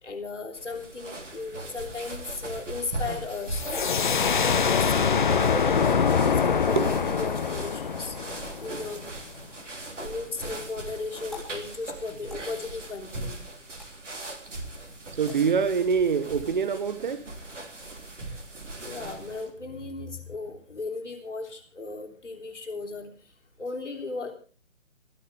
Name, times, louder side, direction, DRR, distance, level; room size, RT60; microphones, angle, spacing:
voice 1, 0.0-3.6 4.1-5.2 5.5-8.2 8.6-9.1 10.0-13.4 18.8-23.1 23.6-24.3, left 3 dB, 65° left, 3.4 m, -36 dB
sound 1, 0.5-19.5, right 2 dB, 65° right, 3.3 m, -39 dB
sound 2, 3.5-9.0, left 6 dB, 40° left, 0.9 m, -24 dB
sound 3, 10.1-16.0, left 3 dB, ahead, 3.6 m, -52 dB
voice 2, 15.2-17.3, right 6 dB, 35° right, 1.3 m, -25 dB
27.0 x 9.4 x 3.5 m
figure-of-eight pair, 145°, 39 cm